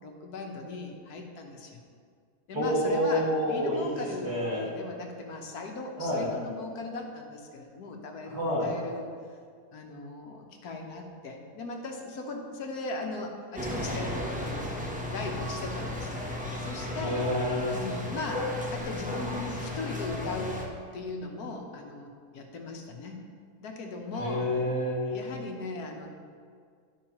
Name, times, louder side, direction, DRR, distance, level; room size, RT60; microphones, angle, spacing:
voice 1, 0.0-1.8 2.5-9.1 9.7-16.2 16.6-17.2 17.7-20.7 20.9-23.2 23.6-24.5 25.1-26.1, left 3 dB, 75° left, 2 dB, 1.4 m, -38 dB
voice 2, 2.5-4.7 6.0-6.3 8.3-8.7 17.0-17.7 24.1-25.2, equal, 85° right, -6 dB, 2.7 m, -28 dB
sound 1, 13.6-20.7, left 1 dB, 10° right, 0.5 m, -34 dB
12.5 x 5.5 x 2.9 m, 2.1 s
omnidirectional pair, 1.7 m